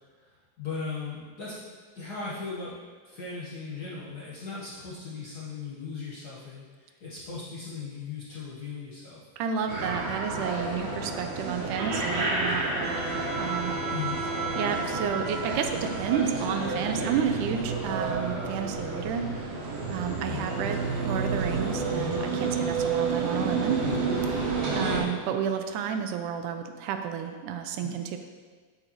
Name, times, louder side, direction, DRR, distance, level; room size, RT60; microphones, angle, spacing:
voice 1, 0.2-1.5 1.9-2.7 3.0-9.2 13.9-14.2 20.2-20.5 24.8-25.1 27.8-28.0, left 4 dB, 80° left, -8 dB, 0.8 m, -37 dB
voice 2, 9.4-13.1 13.4-13.8 14.6-19.3 19.9-23.8 24.7-28.2, right 7 dB, 80° right, 6 dB, 2.0 m, -31 dB
sound 1, 9.7-25.0, right 3 dB, 65° right, 2.3 m, -30 dB
8.7 x 7.9 x 3.0 m, 1.5 s
omnidirectional pair, 3.7 m